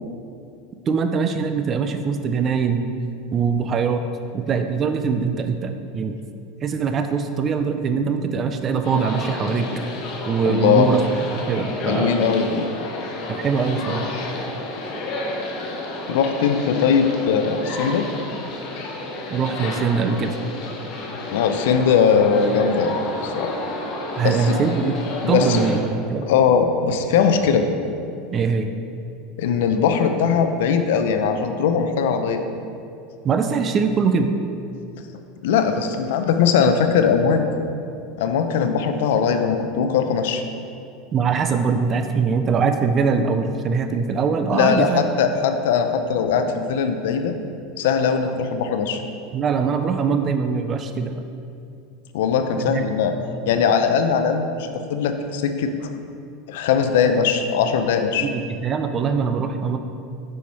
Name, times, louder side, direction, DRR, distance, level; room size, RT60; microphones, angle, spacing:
voice 1, 0.9-2.8 3.3-4.0 4.3-6.2 6.6-9.8 10.3-11.0 11.5-12.2 13.3-14.1 19.3-20.4 24.2-25.0 25.3-26.3 28.3-28.7 33.2-34.3 41.1-45.0 49.3-51.1 52.6-52.9 58.2-59.8, right 5 dB, 30° right, 7 dB, 0.4 m, -22 dB
sound 1, 8.8-25.8, left 2 dB, 50° left, 1.0 m, -31 dB
voice 2, 10.4-10.9 11.8-12.7 16.1-18.1 21.3-23.5 24.2-24.6 25.2-25.6 26.3-27.7 29.4-32.4 35.4-37.4 38.2-40.4 44.5-47.3 47.8-49.0 52.1-53.1 53.5-55.9 56.5-58.3, left 6 dB, 80° left, 7 dB, 0.5 m, -20 dB
5.6 x 4.6 x 4.1 m, 2.6 s
supercardioid pair, 125°, 0 cm